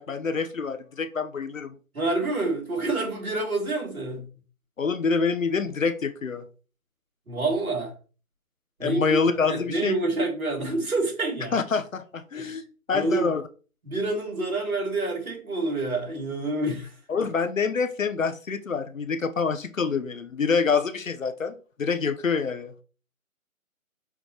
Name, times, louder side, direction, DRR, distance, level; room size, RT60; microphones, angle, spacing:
voice 1, 0.0-1.8 4.8-6.5 8.8-9.9 11.5-13.4 17.1-22.7, left 5 dB, 65° left, 0.8 m, -26 dB
voice 2, 1.9-4.3 7.3-7.9 8.8-9.0 9.5-11.6 12.4-12.5 12.9-13.3 13.8-16.9, right 2 dB, 80° right, 3.4 m, -27 dB
5.9 x 5.0 x 3.2 m
hypercardioid pair, 175°, 42 cm